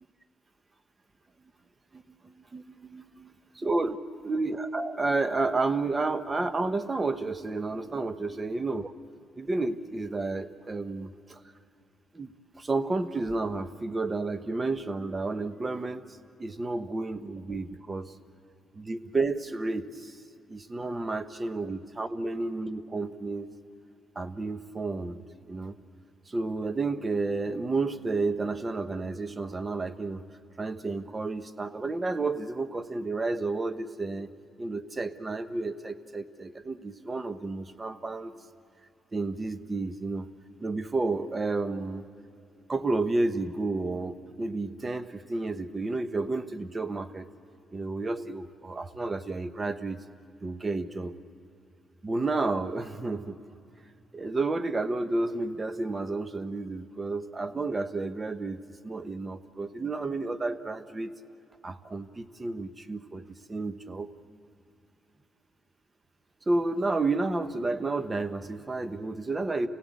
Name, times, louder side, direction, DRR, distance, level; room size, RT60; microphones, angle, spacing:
voice 1, 1.9-4.0 4.2-8.9 9.4-11.4 12.1-12.3 12.6-16.0 16.4-18.1 18.7-20.2 20.5-23.5 24.1-25.7 26.3-30.2 30.6-34.3 34.6-38.3 39.1-40.3 40.6-42.0 42.7-47.3 47.7-50.0 50.4-51.2 52.0-53.4 54.1-58.6 58.8-61.1 61.6-63.2 63.5-64.1 66.5-69.7, right 3 dB, 25° right, 11 dB, 1.1 m, -31 dB
29.5 x 16.5 x 8.5 m, 2.6 s
cardioid pair, 90°, 0 cm